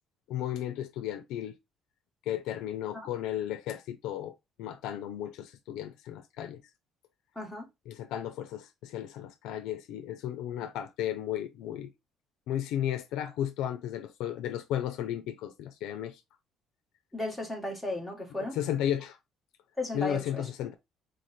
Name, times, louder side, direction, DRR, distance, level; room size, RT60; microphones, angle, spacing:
voice 1, 0.3-1.5 2.3-6.6 7.9-11.9 12.5-16.2 18.4-19.2 19.9-20.7, left 11 dB, 80° left, 0.5 m, -34 dB
voice 2, 7.3-7.7 17.1-18.6 19.8-20.4, left 2 dB, ahead, 1.6 m, -35 dB
3.9 x 3.2 x 4.1 m
cardioid pair, 160°, 0 cm